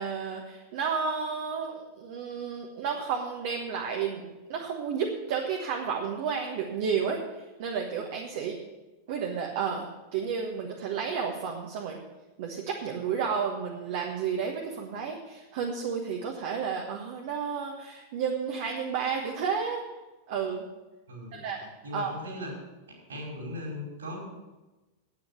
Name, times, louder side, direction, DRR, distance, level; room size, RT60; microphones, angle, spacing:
voice 1, 0.0-8.6 9.1-12.0 12.4-19.8 20.3-20.6 21.3-22.1, right 6 dB, 50° right, 1 dB, 1.3 m, -32 dB
voice 2, 21.1-21.5 21.8-22.5 23.1-24.2, left 1 dB, 70° right, -1 dB, 4.7 m, -38 dB
9.4 x 9.1 x 6.8 m, 1.1 s
figure-of-eight pair, 90°, 0 cm